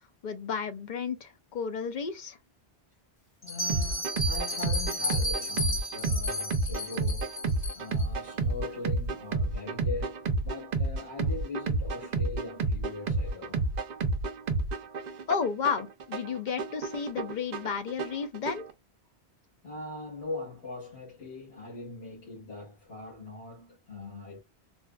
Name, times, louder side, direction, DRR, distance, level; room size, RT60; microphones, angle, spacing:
voice 1, 0.2-2.4 15.3-18.7, left 6 dB, 55° left, 0.6 m, -32 dB
voice 2, 3.4-7.4 7.7-13.7 19.6-24.4, left 3 dB, 90° left, 2.2 m, -41 dB
Bell, 3.4-8.1, left 1 dB, 25° left, 1.2 m, -33 dB
sound 1, 3.7-18.7, right 3 dB, 55° right, 0.6 m, -31 dB
4.1 x 2.3 x 2.2 m
omnidirectional pair, 1.1 m